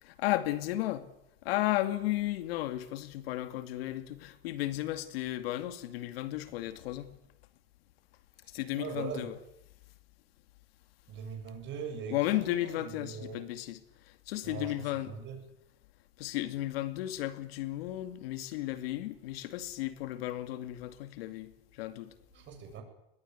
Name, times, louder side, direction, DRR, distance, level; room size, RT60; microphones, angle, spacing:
voice 1, 0.0-1.1 1.4-7.1 8.5-9.4 12.1-15.2 16.2-22.1, left 15 dB, 75° left, 2.3 m, -34 dB
voice 2, 8.8-9.3 11.1-13.4 14.4-15.4 22.3-22.8, right 6 dB, 40° right, 7.7 m, -41 dB
22.0 x 21.0 x 9.7 m
supercardioid pair, 125°, 30 cm